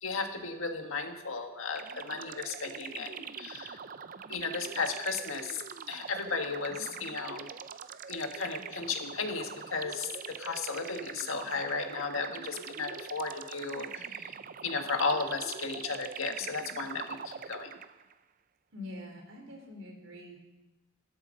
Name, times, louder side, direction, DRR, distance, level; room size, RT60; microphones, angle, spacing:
voice 1, 0.0-3.8 4.3-7.5 8.1-14.3 14.6-17.8, left 4 dB, 85° left, 5 dB, 1.6 m, -35 dB
sound 1, 1.7-18.1, right 7 dB, 40° right, 0.4 m, -43 dB
voice 2, 18.7-20.4, left 1 dB, 70° right, 2 dB, 3.7 m, -45 dB
13.0 x 12.5 x 6.4 m, 1.1 s
head